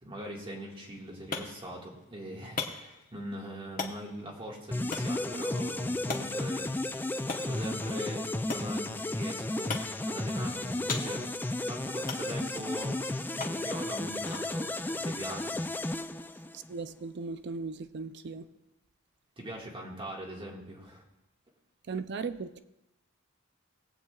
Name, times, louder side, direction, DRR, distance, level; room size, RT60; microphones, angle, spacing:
voice 1, 0.0-6.7 7.3-11.2 11.6-15.6 19.4-21.0, right 1 dB, 25° right, 1.7 m, -41 dB
sound 1, 0.7-16.3, left 4 dB, 40° left, 1.0 m, -43 dB
sound 2, 4.7-16.8, left 2 dB, 10° left, 0.3 m, -33 dB
voice 2, 16.5-18.5 21.9-22.6, right 4 dB, 55° right, 0.4 m, -37 dB
20.0 x 8.4 x 2.3 m
head